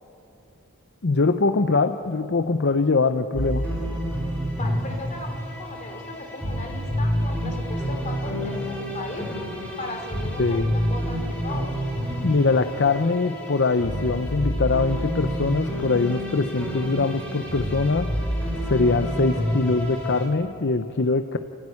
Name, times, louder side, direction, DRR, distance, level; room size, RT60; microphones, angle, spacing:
voice 1, 1.0-3.7 10.4-10.7 12.2-18.1 18.6-21.4, left 3 dB, 55° left, 8 dB, 0.7 m, -22 dB
sound 1, 3.3-20.3, equal, 5° left, 5.0 m, -28 dB
voice 2, 4.5-9.3 9.8-11.8, left 2 dB, 35° left, 3 dB, 3.4 m, -37 dB
29.0 x 15.5 x 9.9 m, 2.9 s
head